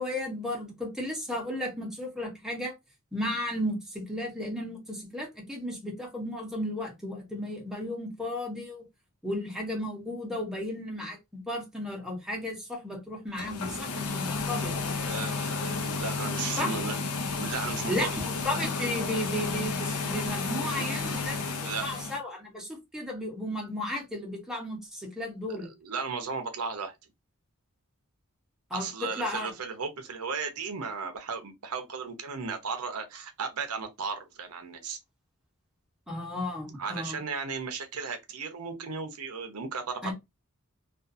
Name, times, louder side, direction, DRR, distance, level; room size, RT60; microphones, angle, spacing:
voice 1, 0.0-2.7 3.1-8.8 9.2-14.7 16.6-16.7 17.9-21.5 21.8-25.7 28.7-29.5 36.1-37.2 40.0-40.1, left 1 dB, ahead, 0.8 m, -34 dB
sound 1, 13.3-22.2, left 4 dB, 75° left, 0.6 m, -32 dB
voice 2, 15.0-17.0 17.4-18.1 20.1-21.2 21.6-21.9 25.6-26.9 28.7-35.0 36.8-40.1, right 5 dB, 85° right, 0.7 m, -35 dB
2.4 x 2.4 x 2.5 m
head